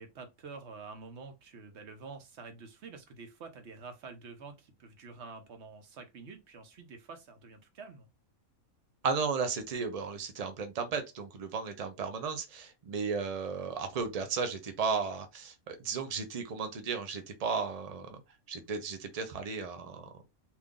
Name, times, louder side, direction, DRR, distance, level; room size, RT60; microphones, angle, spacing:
voice 1, 0.0-8.1, right 4 dB, 55° right, 1.1 m, -48 dB
voice 2, 9.0-18.2 18.5-20.1, right 5 dB, 35° right, 0.6 m, -34 dB
3.0 x 2.6 x 3.7 m
omnidirectional pair, 1.5 m